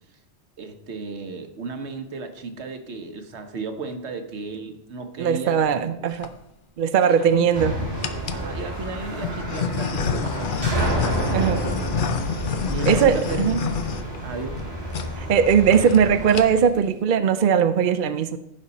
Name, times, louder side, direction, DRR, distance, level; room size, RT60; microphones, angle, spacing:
voice 1, 0.6-5.9 7.1-7.6 8.3-11.7 12.7-13.4 14.2-14.6, right 4 dB, 75° right, 7 dB, 1.3 m, -34 dB
voice 2, 5.2-6.3 6.8-7.7 11.3-11.6 12.9-13.6 15.2-18.4, right 7 dB, 55° right, 9 dB, 0.6 m, -19 dB
sound 1, 5.9-6.3 7.0-7.5 8.0-8.5 9.2-14.6 14.9-15.1 15.4-15.5 15.7-16.0 16.3-16.7, left 6 dB, 55° left, 0.8 m, -28 dB
sound 2, 7.5-16.4, right 1 dB, 20° right, 2.9 m, -30 dB
sound 3, 10.2-16.8, left 2 dB, 85° left, 3.8 m, -46 dB
15.5 x 5.5 x 4.1 m, 0.85 s
omnidirectional pair, 1.2 m